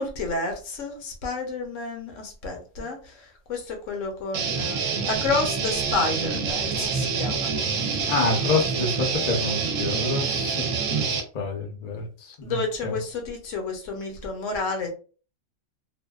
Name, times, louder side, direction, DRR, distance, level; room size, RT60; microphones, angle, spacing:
voice 1, 0.0-8.1 12.4-14.9, left 3 dB, 65° left, 3 dB, 1.0 m, -30 dB
Guitar, 4.3-11.2, right 5 dB, 70° right, 0.9 m, -26 dB
voice 2, 8.1-13.0, left 3 dB, 45° left, 0 dB, 0.6 m, -28 dB
2.6 x 2.1 x 2.3 m, 0.37 s
omnidirectional pair, 1.5 m